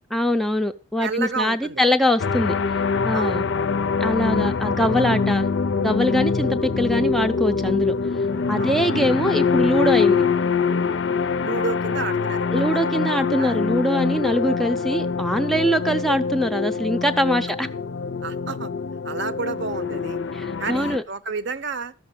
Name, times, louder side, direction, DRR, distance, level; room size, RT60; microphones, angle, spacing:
voice 1, 0.1-2.5 3.0-3.5 4.0-5.5 5.8-7.9 8.5-10.2 12.5-17.7 20.3-21.0, equal, ahead, 0.5 m, -22 dB
voice 2, 1.0-1.9 3.1-3.4 8.6-8.8 11.4-13.0 13.4-13.6 18.2-18.7 19.0-20.2 20.6-21.9, right 4 dB, 55° right, 0.7 m, -30 dB
sound 1, 2.2-21.0, left 5 dB, 55° left, 0.5 m, -24 dB
13.5 x 5.9 x 7.0 m
head